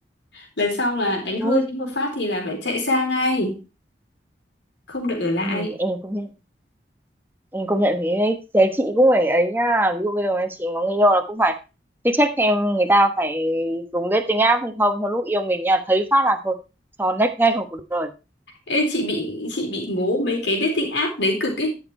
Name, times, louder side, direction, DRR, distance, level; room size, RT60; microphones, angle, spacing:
voice 1, 0.3-3.6 4.9-5.7 18.7-21.8, left 1 dB, 80° left, 1 dB, 4.1 m, -24 dB
voice 2, 1.4-1.9 5.4-6.3 7.5-11.6 12.0-16.6 17.0-18.1, right 1 dB, 10° right, 6 dB, 1.1 m, -21 dB
12.0 x 6.5 x 4.3 m, 0.29 s
head